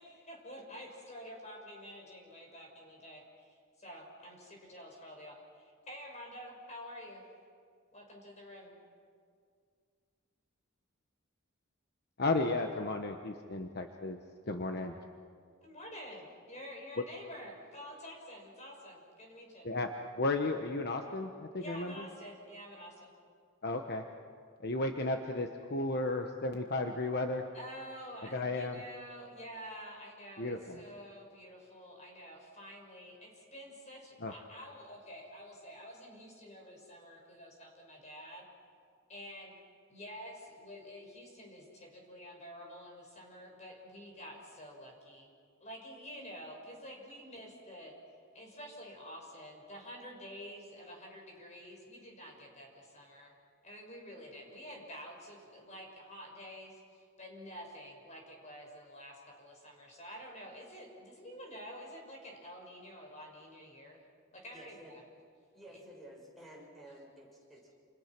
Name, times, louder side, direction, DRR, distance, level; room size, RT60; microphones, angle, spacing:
voice 1, 0.0-3.2 3.5-7.2 7.9-8.8 15.6-19.7 21.6-23.1 27.5-38.5 39.1-39.5 39.9-45.3 45.6-48.0 48.3-53.3 53.6-64.0 64.3-65.0 65.7-65.8, equal, 35° left, 0 dB, 6.0 m, -49 dB
voice 2, 12.2-14.2 14.5-15.0 19.6-19.9 20.2-22.1 23.6-24.0 24.6-27.4 28.3-28.8 30.4-30.8 34.2-34.3, left 2 dB, 55° left, 4 dB, 1.2 m, -34 dB
voice 3, 64.5-64.9 65.5-67.7, equal, ahead, -3 dB, 6.5 m, -53 dB
29.0 x 28.5 x 6.1 m, 2.2 s
head